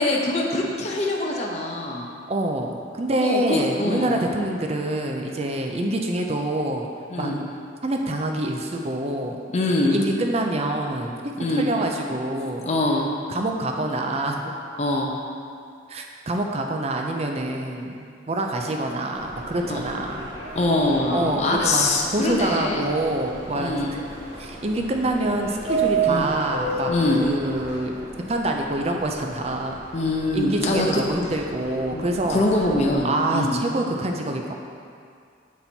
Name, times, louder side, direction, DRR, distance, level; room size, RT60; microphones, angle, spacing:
voice 1, 0.0-2.1 3.2-4.2 7.1-7.4 9.5-10.0 11.4-11.7 12.7-13.1 14.8-15.1 19.7-19.8 20.5-22.8 23.6-23.9 26.1-26.3 26.9-27.2 29.9-31.0 31.9-33.6, left 2 dB, 35° left, -1 dB, 0.6 m, -23 dB
voice 2, 2.3-6.9 7.2-7.4 7.8-9.4 9.9-12.7 13.3-14.5 15.9-20.3 21.1-24.0 24.4-26.9 27.2-28.0 28.3-29.8 30.3-32.4 33.0-34.5, right 1 dB, 35° right, 2 dB, 0.5 m, -26 dB
Subway metro underground, 19.1-33.0, right 4 dB, 70° right, 1.4 m, -33 dB
7.3 x 4.0 x 4.3 m, 2.3 s
head